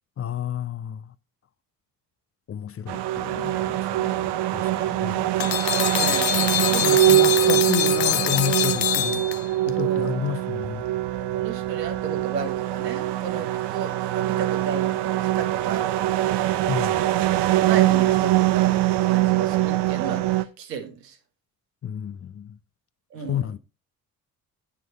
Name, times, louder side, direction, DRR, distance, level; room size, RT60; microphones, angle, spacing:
voice 1, 0.2-1.0 2.5-5.2 6.8-9.2 9.7-10.8 16.7-17.1 21.8-22.5 23.3-23.6, left 9 dB, 30° left, 0.6 m, -31 dB
sound 1, 2.9-20.4, right 15 dB, 55° right, 0.9 m, -23 dB
sound 2, 5.4-9.7, left 13 dB, 80° left, 0.7 m, -25 dB
voice 2, 5.9-7.3 9.7-10.2 11.1-16.3 16.8-17.3 17.5-21.2 23.1-23.5, right 6 dB, 80° right, 1.4 m, -34 dB
9.2 x 5.7 x 4.3 m
figure-of-eight pair, 50°, 48 cm